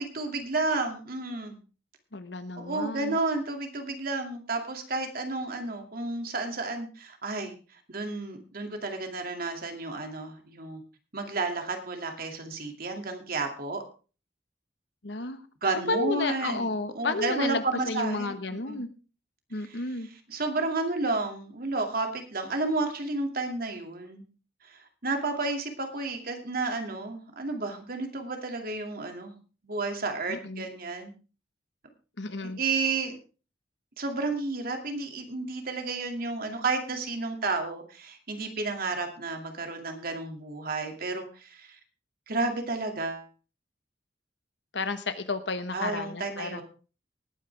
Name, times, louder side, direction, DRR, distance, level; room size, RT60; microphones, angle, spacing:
voice 1, 0.0-1.6 2.6-10.8 11.1-13.8 15.6-18.8 19.6-19.8 20.3-24.2 24.6-31.1 32.4-33.2 34.0-41.8 42.3-43.3 45.7-46.6, right 3 dB, 55° right, 5 dB, 2.4 m, -32 dB
voice 2, 2.1-3.2 15.0-15.4 15.9-18.9 19.5-20.1 30.3-30.7 32.2-32.6 44.7-46.6, left 3 dB, 75° left, 11 dB, 1.3 m, -32 dB
19.0 x 9.3 x 3.5 m, 0.35 s
head